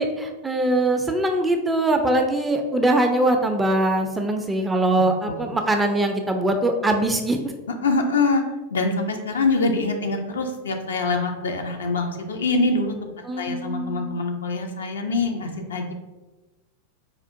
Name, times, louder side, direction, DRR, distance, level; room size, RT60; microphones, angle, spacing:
voice 1, 0.0-7.5 13.3-14.2, right 1 dB, 10° right, 4 dB, 0.3 m, -22 dB
voice 2, 4.9-5.5 7.7-8.4 8.7-15.9, left 3 dB, 65° left, 4 dB, 0.4 m, -24 dB
4.3 x 2.3 x 2.5 m, 1.2 s
figure-of-eight pair, 90°, 0 cm